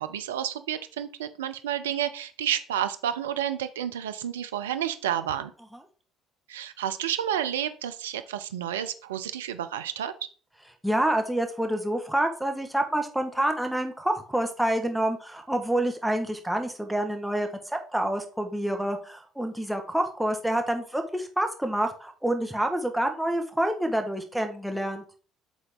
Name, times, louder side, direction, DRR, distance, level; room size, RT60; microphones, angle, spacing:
voice 1, 0.0-5.5 6.5-10.1, right 10 dB, 85° right, 11 dB, 0.5 m, -30 dB
voice 2, 10.8-25.0, right 1 dB, 5° right, 4 dB, 1.5 m, -27 dB
8.3 x 3.9 x 3.6 m, 0.40 s
hypercardioid pair, 60°, 0 cm